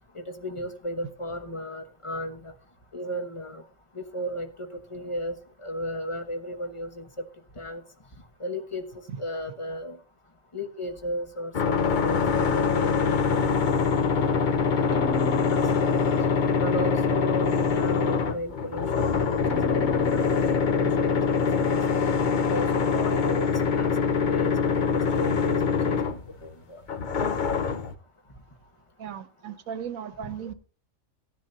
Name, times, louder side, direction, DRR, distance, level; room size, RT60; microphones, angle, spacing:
voice 1, 0.1-2.5 2.9-3.6 3.9-5.4 5.6-7.2 7.6-7.8 8.4-8.8 9.2-10.0 10.5-13.4 13.7-15.9 16.6-21.8 22.5-23.5 23.7-23.9 24.3-25.6 25.8-26.8 30.2-30.3, equal, 25° left, 1.2 m, -35 dB
sound 1, 11.5-26.5 26.9-27.9, left 5 dB, 45° left, 0.8 m, -24 dB
Bowed string instrument, 14.9-17.3 17.7-18.5 19.5-22.0, right 2 dB, 60° right, 1.2 m, -43 dB
voice 2, 29.0-30.5, right 8 dB, 80° right, 1.3 m, -36 dB
17.0 x 10.5 x 2.7 m
omnidirectional pair, 1.4 m